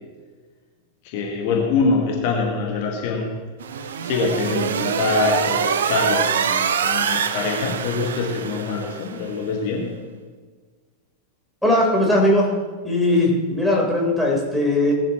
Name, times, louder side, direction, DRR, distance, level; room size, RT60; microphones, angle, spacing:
voice 1, 1.0-3.4 4.0-9.9, left 4 dB, 45° left, 0 dB, 1.8 m, -24 dB
sound 1, 3.6-9.2, right 7 dB, 65° right, 0.8 m, -24 dB
voice 2, 11.6-12.5 12.8-14.9, left 1 dB, ahead, -3 dB, 3.9 m, -19 dB
18.5 x 12.0 x 3.1 m, 1.5 s
figure-of-eight pair, 90°, 0 cm